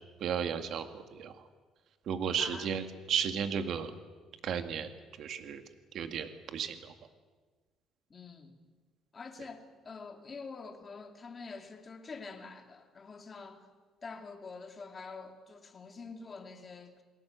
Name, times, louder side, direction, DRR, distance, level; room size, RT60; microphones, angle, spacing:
voice 1, 0.2-1.5 2.1-3.9 4.4-4.9 5.2-5.6 5.9-6.9, right 7 dB, 55° right, 2.0 m, -34 dB
voice 2, 2.4-2.8 8.1-8.6 9.1-13.7 14.0-17.0, left 4 dB, 25° left, 2.6 m, -46 dB
28.5 x 20.0 x 8.2 m
cardioid pair, 140°, 0 cm